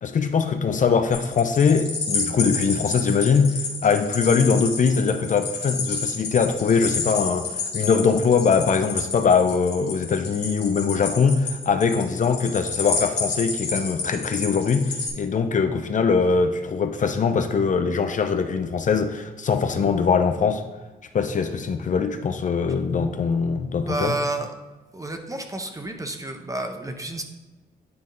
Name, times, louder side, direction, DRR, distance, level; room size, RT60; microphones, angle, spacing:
voice 1, 0.0-20.6 21.1-24.1, left 5 dB, 50° left, 7 dB, 0.6 m, -22 dB
sound 1, 1.1-15.1, left 4 dB, 80° left, 1.7 m, -30 dB
voice 2, 23.8-24.5 24.9-27.2, right 2 dB, 20° right, 5 dB, 0.9 m, -30 dB
9.6 x 3.6 x 3.9 m, 1.1 s
cardioid pair, 75°, 17 cm